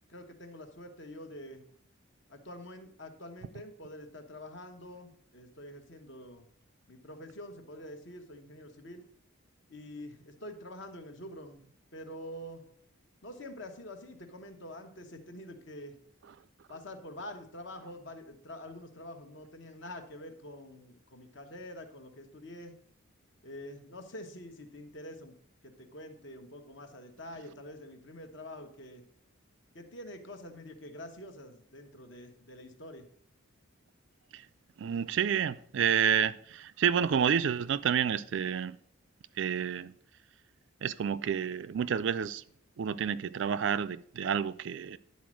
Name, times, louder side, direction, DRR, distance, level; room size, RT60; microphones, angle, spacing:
voice 1, 0.1-1.6 2.3-6.5 6.9-9.0 9.7-11.6 11.9-12.6 13.2-16.0 16.7-22.7 23.4-25.4 25.6-29.1 29.7-33.1, left 1 dB, 55° left, 1.1 m, -46 dB
voice 2, 34.8-38.8 39.4-39.9 40.8-42.4 42.8-45.0, right 8 dB, 55° right, 0.3 m, -29 dB
10.5 x 4.2 x 6.2 m
head